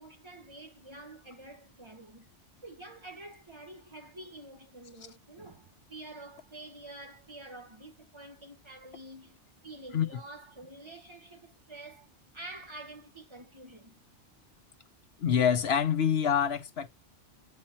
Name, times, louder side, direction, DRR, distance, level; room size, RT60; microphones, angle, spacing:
voice 1, 0.0-2.3 2.6-14.0, right 2 dB, 25° right, 1.0 m, -48 dB
voice 2, 15.2-16.9, left 8 dB, 60° left, 1.1 m, -26 dB
8.5 x 4.3 x 4.4 m
omnidirectional pair, 1.2 m